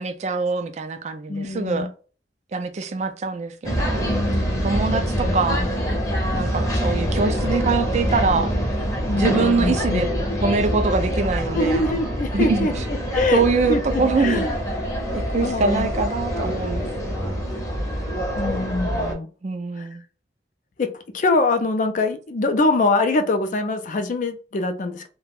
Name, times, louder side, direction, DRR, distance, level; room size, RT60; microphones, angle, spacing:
voice 1, 0.0-1.9 2.5-4.0 4.6-5.6 6.3-8.5 9.1-10.1 10.4-11.8 12.3-12.9 13.3-14.5 15.1-17.5 19.4-20.0, right 4 dB, 40° right, 0.3 m, -24 dB
voice 2, 1.3-1.9 4.0-4.7 5.2-5.7 9.0-10.0 11.5-12.7 13.1-13.4 13.7-14.6 15.4-15.9 18.3-19.3 19.8-19.9 20.8-25.1, left 3 dB, 45° left, 0.4 m, -24 dB
sound 1, 3.6-19.1, equal, 20° left, 0.7 m, -25 dB
2.4 x 2.1 x 3.3 m
head